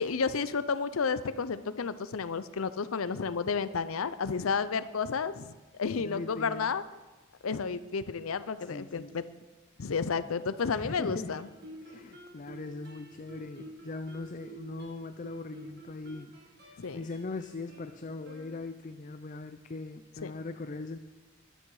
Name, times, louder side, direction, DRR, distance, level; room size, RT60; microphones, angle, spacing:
voice 1, 0.0-6.8 7.4-9.2 9.8-11.5 16.8-17.0 20.2-20.3, left 5 dB, 80° left, 14 dB, 0.6 m, -31 dB
voice 2, 6.0-6.7 8.7-9.2 10.7-11.4 11.8-16.3 16.6-21.0, left 3 dB, 35° left, 9 dB, 0.5 m, -40 dB
Guitar, 11.3-19.0, right 2 dB, 50° right, 2.3 m, -50 dB
13.0 x 12.0 x 4.8 m, 1.2 s
head